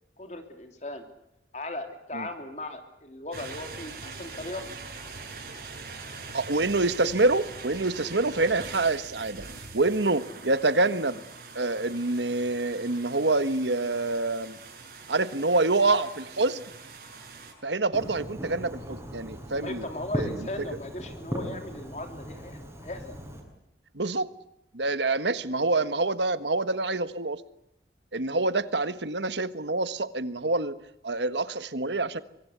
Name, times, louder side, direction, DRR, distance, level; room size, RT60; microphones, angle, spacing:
voice 1, 0.2-1.0 1.5-4.6 19.6-23.1, left 2 dB, 40° left, 6 dB, 3.2 m, -38 dB
sound 1, 3.3-17.5, right 4 dB, 55° right, 7.6 m, -43 dB
voice 2, 6.3-9.4 9.7-11.2 11.5-14.6 15.1-16.6 17.6-19.9 20.2-20.5 23.9-24.3 24.7-27.4 28.1-30.8 31.0-32.2, right 2 dB, 90° right, 13 dB, 1.5 m, -26 dB
Fireworks, 17.9-23.4, equal, 15° right, 6.7 m, -37 dB
24.5 x 24.0 x 8.1 m, 0.82 s
head